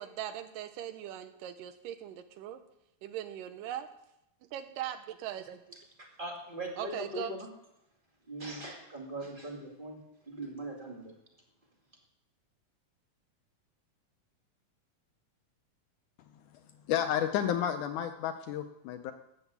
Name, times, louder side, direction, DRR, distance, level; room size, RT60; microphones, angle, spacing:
voice 1, 0.0-2.6 3.0-3.9 4.5-5.8 6.8-7.3, right 11 dB, 75° right, 10 dB, 2.4 m, -40 dB
voice 2, 6.0-7.5 8.3-11.1, right 1 dB, 20° right, 0 dB, 1.7 m, -40 dB
voice 3, 16.9-19.1, left 10 dB, 75° left, 7 dB, 1.9 m, -31 dB
13.0 x 8.2 x 8.2 m, 0.83 s
omnidirectional pair, 4.1 m